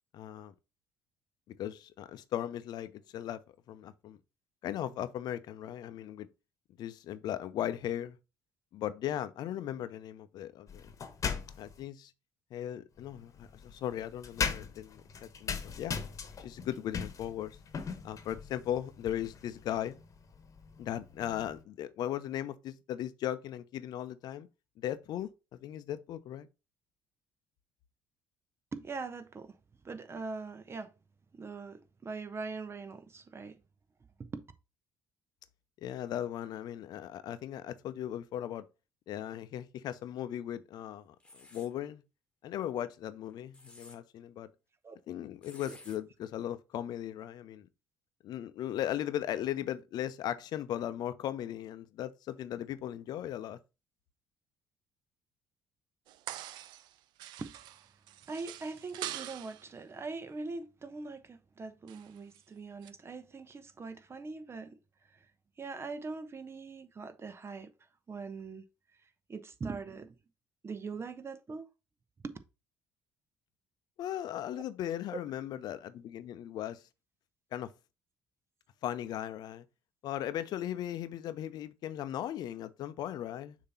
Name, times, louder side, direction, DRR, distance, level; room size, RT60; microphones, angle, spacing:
voice 1, 0.1-0.5 1.5-3.4 3.7-4.2 4.6-6.3 6.8-8.2 8.7-10.9 11.6-12.1 12.5-16.0 16.4-17.6 18.0-20.0 20.8-24.5 24.8-25.3 25.6-26.5 35.8-38.6 39.1-42.0 42.4-44.5 45.1-47.7 48.2-53.6 74.0-76.8 77.5-77.7 78.8-79.6 80.0-83.6, left 11 dB, 60° left, 0.7 m, -37 dB
sound 1, 10.7-11.8 13.0-21.6, left 6 dB, 40° left, 1.2 m, -40 dB
voice 2, 28.7-29.6 29.8-30.9 31.3-33.6 34.2-34.4 44.8-45.0 45.6-45.8 57.4-57.5 58.3-64.8 65.1-65.3 65.6-67.7 68.1-68.6 69.3-70.1 70.6-71.7 72.2-72.4, right 4 dB, 35° right, 1.0 m, -42 dB
sound 2, 41.2-41.7 43.3-44.0 45.4-46.0, left 2 dB, 15° left, 1.5 m, -53 dB
sound 3, 56.1-56.9 57.2-59.7 61.9-62.4 62.8-62.9, right 13 dB, 65° right, 0.5 m, -44 dB
6.6 x 2.9 x 5.6 m
hypercardioid pair, 55°, 8 cm